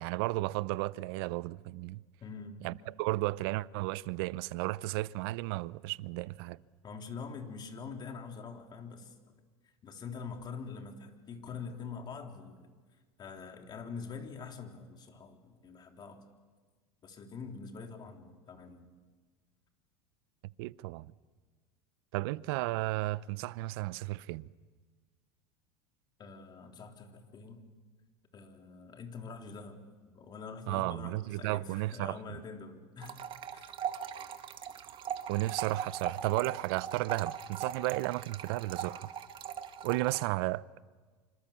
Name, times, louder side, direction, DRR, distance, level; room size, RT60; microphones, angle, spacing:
voice 1, 0.0-2.0 2.6-6.6 20.6-21.1 22.1-24.5 30.7-32.2 35.3-39.1 39.8-40.6, right 19 dB, 70° right, 0.7 m, -33 dB
voice 2, 2.2-2.6 6.8-9.1 9.8-12.7 13.2-16.2 17.0-18.9 26.2-27.6 28.3-33.2 33.5-33.8, left 5 dB, 35° left, 3.6 m, -45 dB
sound 1, 33.0-40.3, right 8 dB, 40° right, 1.8 m, -40 dB
26.5 x 26.5 x 7.3 m
supercardioid pair, 110°, 13 cm